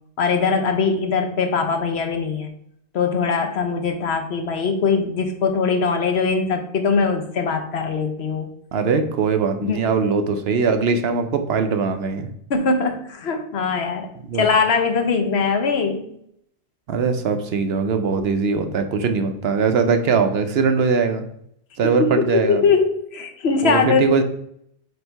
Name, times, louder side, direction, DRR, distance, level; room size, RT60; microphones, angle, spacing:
voice 1, 0.2-2.5 2.9-8.5 9.6-9.8 12.5-14.1 14.3-16.1 22.0-24.0, left 5 dB, 70° left, 6 dB, 1.1 m, -21 dB
voice 2, 8.7-12.3 14.2-14.5 16.9-21.2 21.8-22.6 23.6-24.2, right 5 dB, 65° right, 7 dB, 0.9 m, -21 dB
7.9 x 2.7 x 4.5 m, 0.72 s
omnidirectional pair, 1.1 m